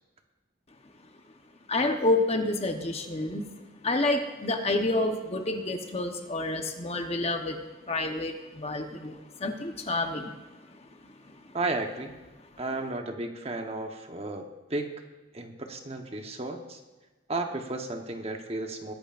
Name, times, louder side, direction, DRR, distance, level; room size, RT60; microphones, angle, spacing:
voice 1, 1.7-3.5 3.8-7.6 7.9-10.3 11.0-11.1, left 2 dB, 35° left, 5 dB, 1.0 m, -28 dB
voice 2, 11.5-12.1 12.6-14.4 14.7-14.9 15.3-16.8 17.3-18.9, right 2 dB, 35° right, 4 dB, 1.1 m, -33 dB
22.0 x 11.0 x 2.5 m, 1.2 s
head